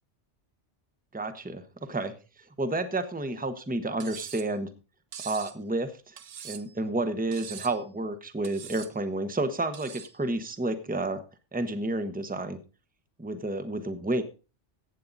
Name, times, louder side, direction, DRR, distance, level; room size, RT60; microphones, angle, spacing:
voice 1, 1.1-2.1 2.6-4.7 5.2-6.2 6.4-11.2 11.5-12.6 13.2-14.2, right 2 dB, 10° right, 9 dB, 1.0 m, -30 dB
Cutlery silverware, 4.0-4.5 5.1-5.6 6.2-6.8 7.3-7.8 8.4-8.9 9.7-10.2, right 8 dB, 60° right, 1.0 m, -43 dB
15.5 x 8.5 x 4.1 m, 0.34 s
omnidirectional pair, 1.2 m